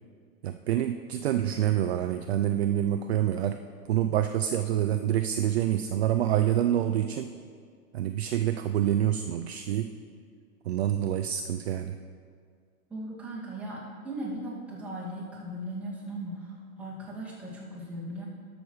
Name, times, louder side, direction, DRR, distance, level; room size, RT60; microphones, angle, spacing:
voice 1, 0.4-3.6 3.9-7.3 7.9-9.9 10.6-12.0, right 11 dB, 50° right, 8 dB, 0.4 m, -27 dB
voice 2, 12.9-18.3, right 1 dB, 5° right, -8 dB, 2.2 m, -38 dB
12.0 x 6.6 x 4.7 m, 2.1 s
hypercardioid pair, 145°, 44 cm